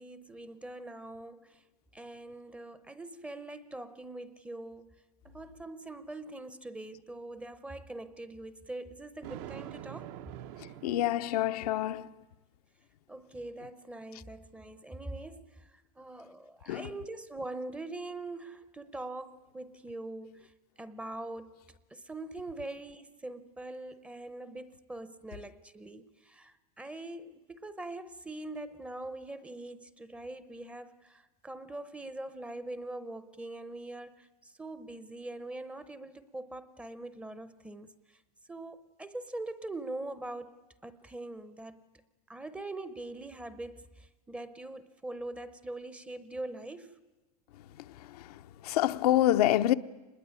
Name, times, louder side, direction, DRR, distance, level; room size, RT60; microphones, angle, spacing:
voice 1, 0.0-1.6 1.9-4.9 5.2-10.2 13.1-20.5 20.8-21.6 21.9-37.9 38.5-40.6 40.8-41.8 42.3-47.0, right 2 dB, 5° right, 0.7 m, -43 dB
Thunder, 9.2-11.8, right 12 dB, 45° right, 0.8 m, -45 dB
voice 2, 10.8-12.1 16.7-16.9 48.6-49.7, left 13 dB, 80° left, 0.9 m, -26 dB
25.0 x 20.5 x 9.7 m
supercardioid pair, 160°, 20 cm